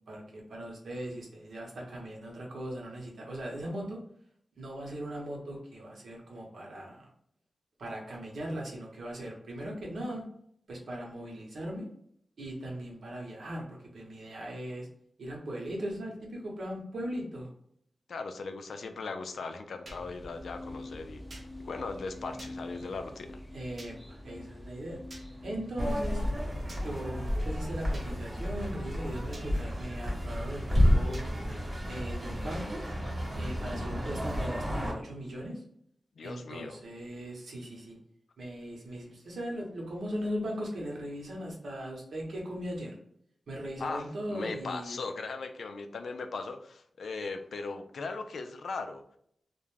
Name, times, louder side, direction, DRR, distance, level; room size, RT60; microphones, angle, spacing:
voice 1, 0.1-4.0 4.6-7.1 7.8-10.2 10.7-11.9 12.4-13.6 13.9-14.9 15.2-17.5 23.5-25.0 25.4-26.2 26.8-30.6 30.9-31.3 31.9-32.8 33.3-35.6 36.2-38.0 38.4-42.9 43.5-45.0, equal, 85° right, -2 dB, 0.8 m, -39 dB
voice 2, 18.1-23.4 36.2-36.8 43.8-49.2, left 4 dB, 85° left, 7 dB, 0.3 m, -39 dB
sound 1, 19.9-26.3, left 1 dB, 5° left, 0.5 m, -45 dB
sound 2, 19.9-20.0 21.3-21.5 22.4-22.5 23.8-23.9 25.1-25.3 26.7-26.8 27.9-28.1 29.3-29.5 31.1-31.3, right 2 dB, 45° right, 0.6 m, -48 dB
sound 3, 25.8-34.9, equal, 25° right, 0.9 m, -31 dB
2.4 x 2.2 x 3.1 m, 0.68 s
wide cardioid pair, 110°, 0 cm